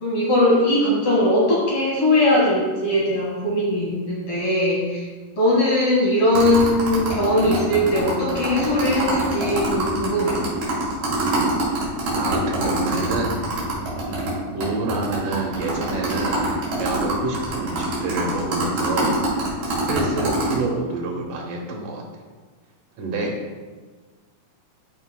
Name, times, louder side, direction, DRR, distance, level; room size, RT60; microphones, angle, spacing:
voice 1, 0.0-5.1 5.4-10.4, left 1 dB, 50° left, -5 dB, 2.3 m, -20 dB
sound 1, 6.3-14.3 14.6-14.7 14.9-20.5, right 2 dB, 55° right, 3.7 m, -24 dB
voice 2, 12.1-13.3 14.0-16.5 16.8-19.1 19.7-22.0 23.0-23.4, right 2 dB, 75° right, 0 dB, 2.4 m, -28 dB
14.0 x 5.0 x 2.2 m, 1.4 s
omnidirectional pair, 4.0 m